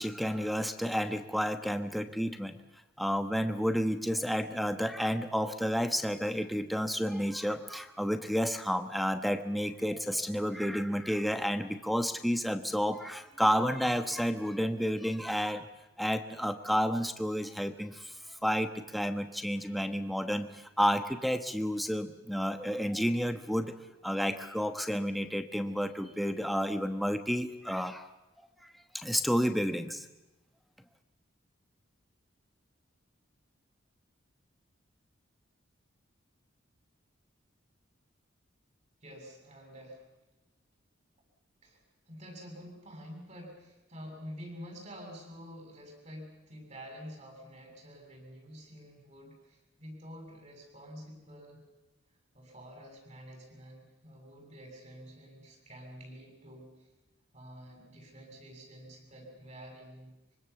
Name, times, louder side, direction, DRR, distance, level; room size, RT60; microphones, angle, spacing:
voice 1, 0.0-2.6 3.0-15.7 16.0-23.7 24.0-28.1 28.6-30.1, equal, ahead, 7 dB, 1.2 m, -31 dB
voice 2, 39.0-40.1 41.6-41.8 42.1-51.6 52.3-56.9 57.3-60.1, equal, 35° right, 2 dB, 7.4 m, -48 dB
25.0 x 24.5 x 7.1 m, 1.0 s
head